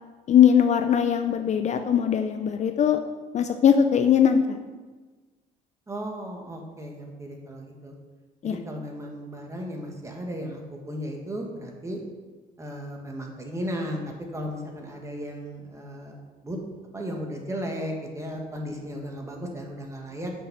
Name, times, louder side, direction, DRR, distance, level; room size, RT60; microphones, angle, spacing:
voice 1, 0.3-3.0 3.3-4.6 8.4-8.6, left 8 dB, 45° left, 7 dB, 0.5 m, -20 dB
voice 2, 5.9-7.9 8.4-12.0 12.6-16.1 16.4-16.6 16.9-20.3, equal, 15° right, 1 dB, 1.6 m, -35 dB
7.2 x 6.1 x 5.5 m, 1.3 s
cardioid pair, 110°, 17 cm